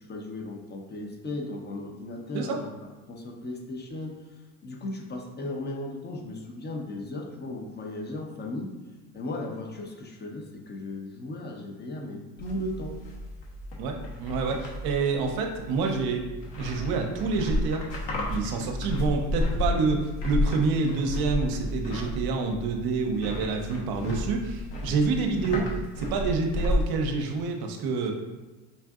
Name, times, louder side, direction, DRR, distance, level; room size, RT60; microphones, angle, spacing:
voice 1, 0.0-2.7 3.1-4.2 4.6-8.7 9.1-13.0, left 1 dB, 20° left, 2 dB, 0.6 m, -36 dB
sound 1, 12.4-26.9, left 1 dB, 60° left, 1.1 m, -32 dB
voice 2, 13.8-16.3 16.6-17.8 18.3-28.1, right 4 dB, 50° right, 3 dB, 0.7 m, -27 dB
5.3 x 2.5 x 2.4 m, 1.2 s
supercardioid pair, 95°, 46 cm